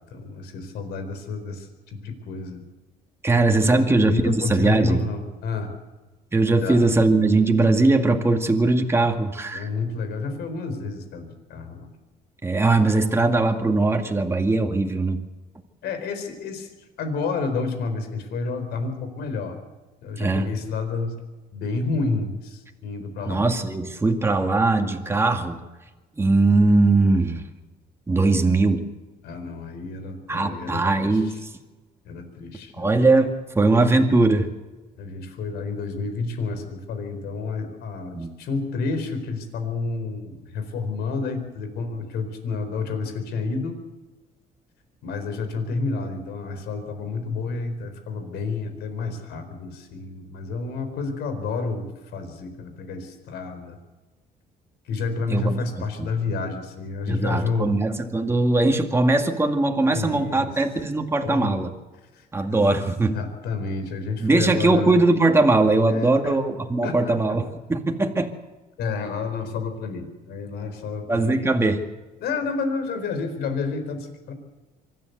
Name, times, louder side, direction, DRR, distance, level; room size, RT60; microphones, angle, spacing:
voice 1, 0.1-2.6 3.6-5.7 6.6-6.8 9.5-11.9 15.8-16.7 17.0-19.6 20.0-21.1 21.5-23.4 29.2-31.1 32.0-33.0 35.0-43.8 45.0-53.8 54.8-57.7 59.9-60.5 61.2-61.7 62.1-62.2 62.5-62.8 63.1-65.0 65.9-66.4 66.8-67.4 68.8-71.6 72.2-74.3, left 4 dB, 75° left, 8 dB, 4.3 m, -30 dB
voice 2, 3.2-5.1 6.3-9.7 12.4-15.2 20.2-20.5 23.3-25.6 26.2-27.4 28.1-28.9 30.3-31.4 32.8-34.5 38.1-38.3 55.3-55.6 56.0-56.1 57.1-61.7 62.3-63.2 64.2-68.3 71.1-71.8, right 2 dB, 15° right, 4 dB, 2.1 m, -20 dB
24.5 x 13.5 x 8.1 m, 1.2 s
cardioid pair, 110°, 17 cm